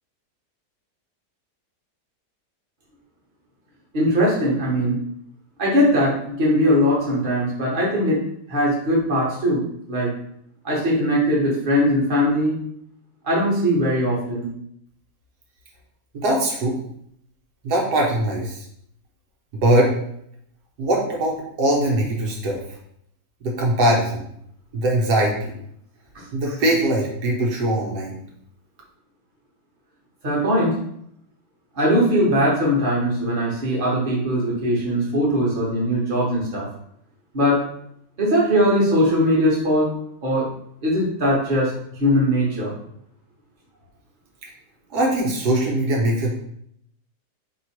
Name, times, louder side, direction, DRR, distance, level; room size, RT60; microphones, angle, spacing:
voice 1, 3.9-5.0 5.6-8.2 8.5-9.6 9.9-10.1 10.6-12.6 13.2-14.5 30.2-30.7 31.7-36.6 37.3-37.6 38.2-39.9 40.2-40.5 40.8-41.7 42.0-42.7, equal, 35° right, -4 dB, 1.3 m, -20 dB
voice 2, 16.1-16.8 17.6-18.7 19.5-19.9 20.8-22.8 23.4-24.2 24.7-25.5 26.3-28.1 44.4-44.5 44.9-46.4, right 1 dB, 85° right, -2 dB, 1.4 m, -21 dB
3.1 x 3.1 x 4.3 m, 0.71 s
omnidirectional pair, 1.7 m